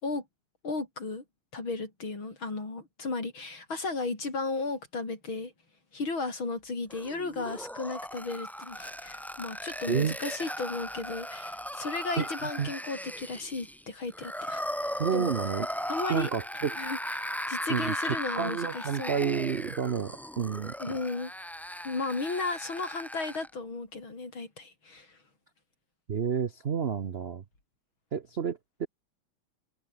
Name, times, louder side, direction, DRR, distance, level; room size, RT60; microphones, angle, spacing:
voice 1, 0.6-1.2 1.5-5.5 5.9-15.3 15.9-16.3 16.8-19.1 20.8-21.3 21.8-25.2, left 3 dB, 65° left, 6.0 m, -35 dB
sound 1, 6.9-23.5, equal, ahead, 0.4 m, -37 dB
voice 2, 12.2-12.7 15.0-15.7 16.1-16.8 17.7-21.0 26.1-27.4 28.1-28.9, right 7 dB, 60° right, 0.6 m, -30 dB
omnidirectional pair, 2.3 m